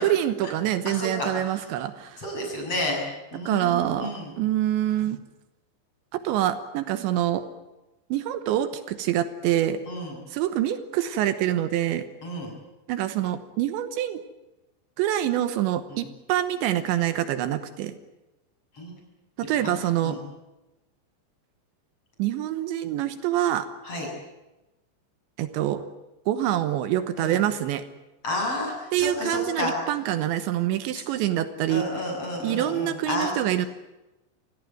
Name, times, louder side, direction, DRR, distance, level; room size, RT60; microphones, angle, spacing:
voice 1, 0.0-2.2 3.4-5.2 6.1-7.4 8.1-9.8 10.3-12.1 12.9-14.2 15.0-18.0 19.4-20.2 22.2-23.7 25.4-25.8 26.3-27.8 28.9-31.8 32.4-33.7, right 12 dB, 80° right, 11 dB, 3.3 m, -26 dB
voice 2, 0.9-1.6 2.2-3.0 3.3-4.4 9.9-10.2 12.2-12.5 15.9-16.1 18.7-18.9 19.6-20.2 23.8-24.1 27.2-27.4 28.2-29.8 31.7-33.3, left 1 dB, 30° left, 0 dB, 7.8 m, -31 dB
26.0 x 17.0 x 9.3 m, 1.0 s
omnidirectional pair, 5.3 m